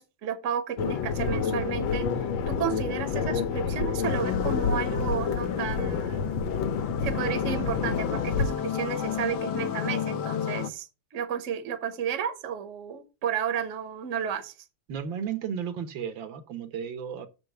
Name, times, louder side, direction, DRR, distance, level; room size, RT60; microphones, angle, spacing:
voice 1, 0.0-2.1 2.5-6.2 7.0-14.5, right 8 dB, 50° right, 1.1 m, -32 dB
sound 1, 0.8-8.4, left 5 dB, 90° left, 1.7 m, -28 dB
sound 2, 4.0-10.7, left 9 dB, 70° left, 1.3 m, -33 dB
voice 2, 14.9-17.3, right 8 dB, 75° right, 1.6 m, -34 dB
6.9 x 4.6 x 6.3 m
omnidirectional pair, 2.1 m